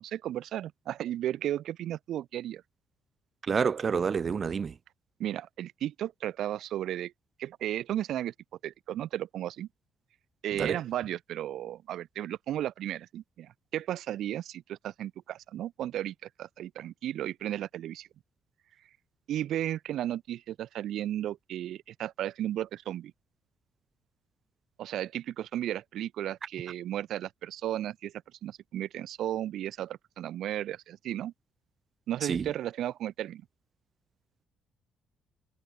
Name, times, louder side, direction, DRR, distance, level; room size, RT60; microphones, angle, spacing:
voice 1, 0.0-2.6 5.2-7.1 7.4-8.3 8.6-9.7 10.4-18.1 19.3-23.1 24.8-28.1 28.4-31.3 32.1-33.4, right 12 dB, 70° right, 3.1 m, -34 dB
voice 2, 3.4-4.8 10.6-10.8 32.2-32.5, right 6 dB, 45° right, 1.6 m, -28 dB
supercardioid pair, 70°, 0 cm